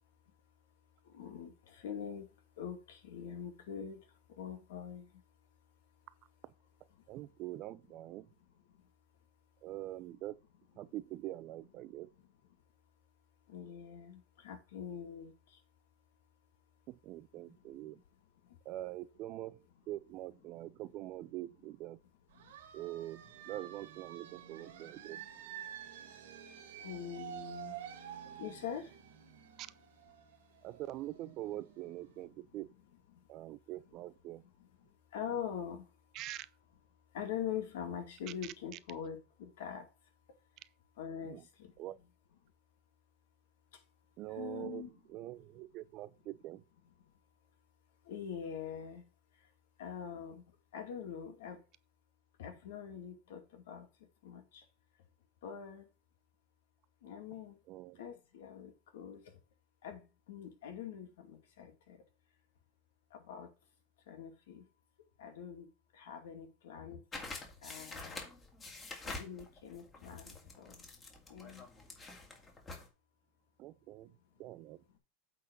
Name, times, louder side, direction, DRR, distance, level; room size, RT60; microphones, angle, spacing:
voice 1, 1.0-5.2 7.0-7.1 13.5-15.6 18.4-18.6 22.4-22.5 25.6-25.7 26.8-27.8 28.4-29.0 33.1-33.3 34.8-35.9 37.1-39.9 41.0-41.7 43.7-43.8 44.4-44.9 48.0-49.1 49.8-50.4 50.7-51.6 52.4-53.9 54.2-54.6 55.4-55.9 57.0-57.6 58.0-59.3 59.8-62.0 63.1-63.5 64.1-64.7 65.2-67.0 67.6-68.3 69.0-70.8 71.3-71.7, left 8 dB, 80° left, 2.3 m, -44 dB
voice 2, 7.1-8.3 9.6-10.4 10.8-12.1 16.9-18.0 18.6-22.0 22.7-25.2 29.6-29.7 30.6-32.7 33.3-34.4 36.1-36.5 38.4-38.5 40.6-40.7 41.2-41.5 41.8-42.0 44.2-44.8 45.1-46.6 57.7-58.0 73.6-74.8, right 15 dB, 45° right, 0.6 m, -44 dB
sound 1, 22.3-31.8, right 10 dB, 90° right, 2.0 m, -49 dB
sound 2, 67.1-72.9, left 3 dB, 20° left, 2.2 m, -47 dB
8.5 x 4.0 x 5.3 m
supercardioid pair, 135°, 0 cm